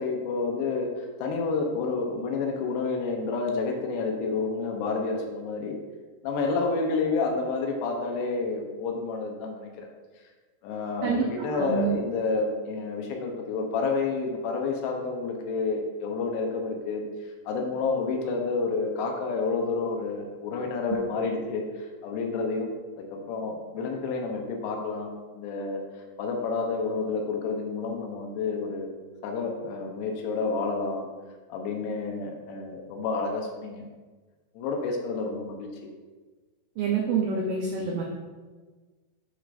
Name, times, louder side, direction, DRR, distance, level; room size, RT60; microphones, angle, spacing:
voice 1, 0.0-5.8 6.2-9.9 10.6-17.0 17.5-22.7 23.0-25.8 26.2-28.9 29.2-31.1 31.5-33.9 34.5-35.9, left 4 dB, 80° left, 2 dB, 3.0 m, -29 dB
voice 2, 11.0-12.0 36.8-38.0, right 5 dB, 80° right, -2 dB, 1.9 m, -27 dB
11.0 x 5.0 x 2.5 m, 1.3 s
omnidirectional pair, 4.8 m